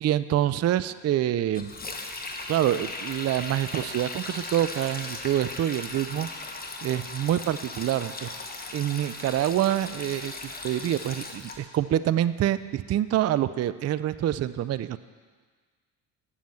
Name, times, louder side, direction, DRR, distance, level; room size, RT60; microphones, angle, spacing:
voice 1, 0.0-1.7 2.5-6.3 6.8-8.3 8.7-10.3 10.6-15.0, right 12 dB, 35° right, 15 dB, 0.4 m, -26 dB
Sink (filling or washing), 1.5-11.6, left 2 dB, 20° left, 1.4 m, -38 dB
10.0 x 7.2 x 7.7 m, 1.5 s
hypercardioid pair, 60°, 46 cm